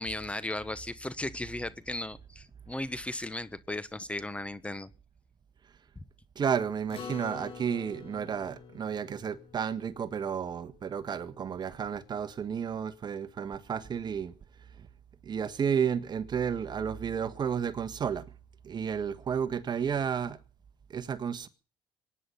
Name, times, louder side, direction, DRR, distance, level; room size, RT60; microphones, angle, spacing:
voice 1, 0.0-4.9, left 1 dB, 10° left, 1.2 m, -36 dB
voice 2, 6.3-14.3 14.8-14.9 15.2-18.3 18.6-20.4 20.9-21.5, right 7 dB, 40° right, 1.6 m, -32 dB
Acoustic guitar, 6.9-11.6, left 5 dB, 60° left, 6.2 m, -47 dB
23.5 x 10.0 x 5.6 m
cardioid pair, 100°, 11 cm